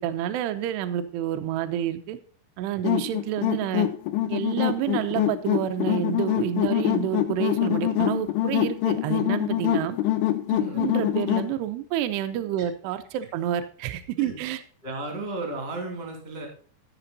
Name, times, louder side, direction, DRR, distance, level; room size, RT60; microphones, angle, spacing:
voice 1, 0.0-2.2 2.6-3.9 4.3-10.0 10.5-14.6, right 11 dB, 75° right, 9 dB, 2.6 m, -29 dB
zambomba spanish instrument, 2.8-11.5, left 12 dB, 90° left, 3.4 m, -25 dB
voice 2, 10.5-10.9 14.2-14.4 14.8-16.5, right 2 dB, 20° right, 2 dB, 1.9 m, -34 dB
13.0 x 6.9 x 4.1 m, 0.42 s
omnidirectional pair, 5.5 m